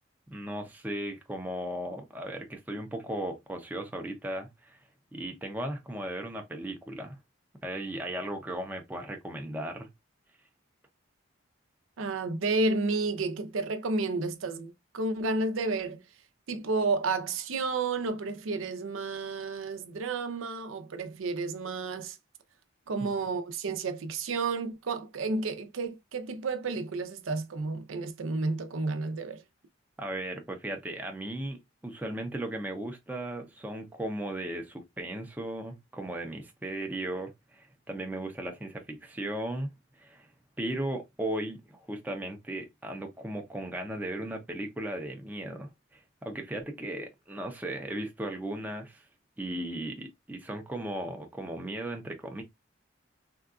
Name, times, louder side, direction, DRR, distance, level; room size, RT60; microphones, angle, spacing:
voice 1, 0.3-4.8 5.1-7.2 7.6-9.9 30.0-40.3 40.6-49.0 49.4-52.4, right 1 dB, 10° right, 0.4 m, -36 dB
voice 2, 12.0-16.0 16.5-22.2 22.9-29.4, right 3 dB, 85° right, 0.5 m, -31 dB
3.6 x 2.3 x 2.3 m
head